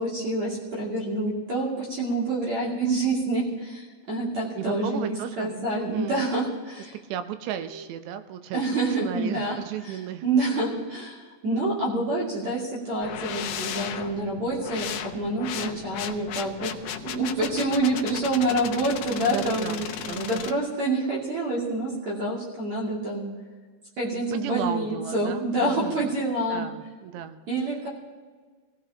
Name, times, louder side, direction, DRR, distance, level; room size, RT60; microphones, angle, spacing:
voice 1, 0.0-6.9 8.5-9.6 9.8-10.0 10.2-16.7 17.0-23.3 24.0-26.7 27.5-27.9, right 2 dB, 45° right, -5 dB, 3.3 m, -27 dB
voice 2, 4.6-5.5 5.8-6.3 6.9-8.6 8.9-10.2 15.6-15.8 19.3-20.5 24.3-26.1 26.5-27.4, right 10 dB, 85° right, 9 dB, 2.9 m, -34 dB
sound 1, 13.0-20.5, left 9 dB, 75° left, 2.2 m, -35 dB
24.5 x 16.5 x 2.9 m, 1.4 s
omnidirectional pair, 4.9 m